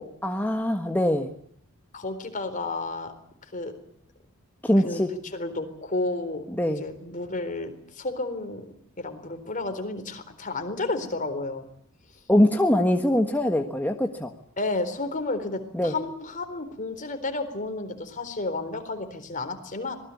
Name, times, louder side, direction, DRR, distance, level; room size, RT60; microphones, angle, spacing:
voice 1, 0.2-1.3 4.6-5.1 6.6-6.8 12.3-14.3 15.7-15.9, left 1 dB, 10° left, 4 dB, 1.4 m, -22 dB
voice 2, 1.9-3.1 3.5-3.7 4.8-5.0 5.3-6.4 6.8-8.7 9.0-11.7 14.6-20.0, left 2 dB, 35° left, 7 dB, 4.0 m, -31 dB
26.0 x 19.5 x 8.5 m, 0.65 s
head